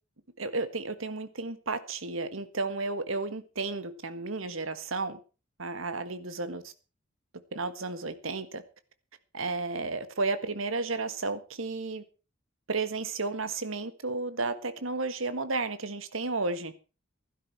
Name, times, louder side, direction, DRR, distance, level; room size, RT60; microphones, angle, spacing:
voice 1, 0.4-5.2 5.6-6.7 7.5-8.6 9.3-12.0 12.7-16.7, right 3 dB, 75° right, 11 dB, 1.6 m, -33 dB
15.5 x 12.0 x 4.6 m, 0.34 s
head